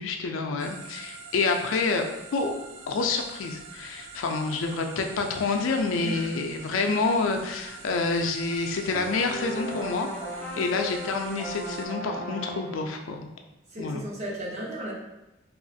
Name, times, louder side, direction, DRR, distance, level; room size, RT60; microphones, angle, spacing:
voice 1, 0.0-2.0 2.3-2.5 2.9-10.1 10.6-13.3 13.8-14.0, left 4 dB, 80° left, 4 dB, 0.4 m, -28 dB
sound 1, 0.6-11.9, right 4 dB, 75° right, 0.4 m, -45 dB
voice 2, 6.0-6.4 10.5-10.9 13.7-14.9, equal, 35° right, -3 dB, 0.6 m, -35 dB
sound 2, 8.9-12.8, right 1 dB, 5° left, 0.6 m, -36 dB
3.0 x 2.4 x 2.6 m, 0.99 s
head